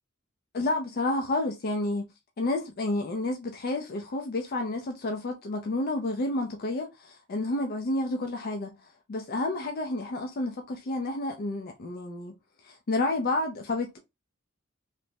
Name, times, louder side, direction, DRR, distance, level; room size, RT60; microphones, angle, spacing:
voice 1, 0.5-2.0 2.4-8.7 9.1-12.3 12.6-14.0, left 2 dB, 45° left, 0.4 m, -30 dB
3.2 x 2.0 x 2.7 m
head